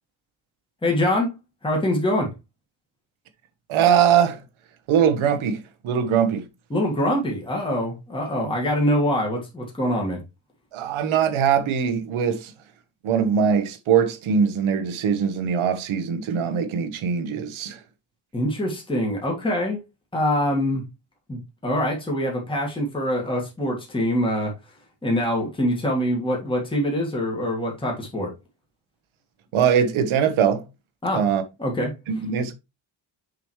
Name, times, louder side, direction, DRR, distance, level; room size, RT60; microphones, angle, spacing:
voice 1, 0.8-1.4 1.6-2.3 6.7-10.2 18.3-19.8 20.1-20.8 21.3-24.5 25.0-28.3 31.0-31.2 31.6-31.9, left 1 dB, 10° left, 1.8 m, -24 dB
voice 2, 3.7-4.4 4.9-6.5 10.7-12.5 13.0-17.8 29.5-30.7 31.1-31.4 32.1-32.5, right 7 dB, 85° right, 1.3 m, -21 dB
6.8 x 5.1 x 3.2 m
cardioid pair, 160°, 47 cm